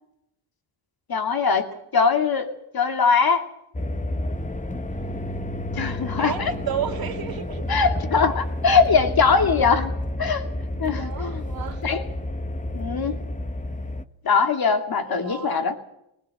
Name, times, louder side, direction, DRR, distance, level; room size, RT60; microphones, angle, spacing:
voice 1, 1.1-1.7 1.9-3.5 5.7-6.5 7.7-9.9 10.2-10.4 10.8-11.4 11.8-12.0 12.7-13.2 14.2-15.8, left 5 dB, 45° left, 7 dB, 2.7 m, -21 dB
sound 1, 3.7-14.0, left 1 dB, 15° left, 1.2 m, -30 dB
voice 2, 5.7-7.6 10.9-11.8 15.0-15.7, right 9 dB, 45° right, 2 dB, 3.3 m, -33 dB
20.5 x 20.0 x 7.9 m, 0.82 s
cardioid pair, 95°, 49 cm